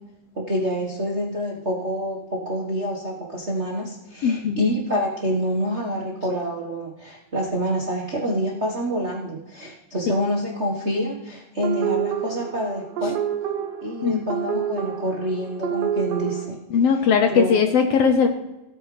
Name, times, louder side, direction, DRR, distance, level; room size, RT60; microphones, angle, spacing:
voice 1, 0.3-13.2 13.8-16.6 17.3-17.7, equal, 40° right, -2 dB, 1.0 m, -27 dB
voice 2, 4.2-4.7 14.0-14.2 16.7-18.3, left 6 dB, 70° left, 6 dB, 1.6 m, -19 dB
sound 1, 11.6-16.4, right 9 dB, 65° right, 2.0 m, -28 dB
17.5 x 9.0 x 3.3 m, 1.0 s
omnidirectional pair, 3.3 m